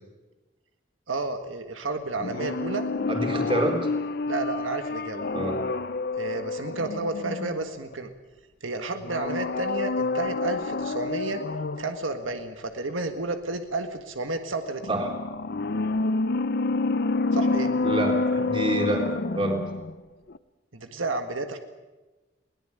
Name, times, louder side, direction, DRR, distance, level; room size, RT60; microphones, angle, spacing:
voice 1, 1.1-2.9 4.3-5.3 6.2-8.1 8.6-11.4 11.8-15.0 17.3-17.7 20.7-21.6, right 3 dB, 85° right, 7 dB, 1.7 m, -31 dB
sound 1, 2.2-7.9 9.0-12.0 14.8-20.0 20.3-20.4, left 3 dB, 50° left, 0.7 m, -28 dB
voice 2, 3.1-3.9 5.3-5.7 14.9-15.2 17.8-19.7, right 1 dB, 25° right, 3 dB, 3.6 m, -27 dB
21.5 x 18.5 x 9.0 m, 1.2 s
head